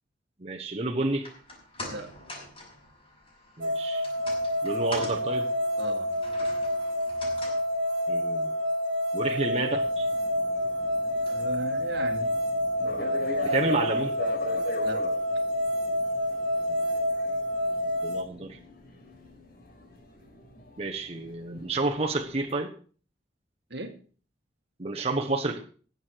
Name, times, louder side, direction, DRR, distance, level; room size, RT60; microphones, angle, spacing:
voice 1, 0.4-1.3 3.6-4.1 4.6-5.5 8.1-8.5 9.1-10.1 13.4-14.2 16.7-16.8 18.0-18.6 20.8-22.7 24.8-25.6, right 2 dB, 35° right, 1 dB, 1.3 m, -30 dB
sound 1, 1.1-13.5 13.8-13.9, left 2 dB, 30° left, 5.9 m, -46 dB
sound 2, 3.6-18.2, equal, 85° right, 1.8 m, -28 dB
voice 2, 5.8-6.1 11.3-12.3 12.8-13.2 14.8-15.0 23.7-23.9, right 2 dB, 65° right, 7 dB, 1.7 m, -37 dB
sound 3, 9.7-22.5, left 2 dB, 55° left, 5.0 m, -41 dB
19.5 x 7.8 x 4.7 m, 0.43 s
head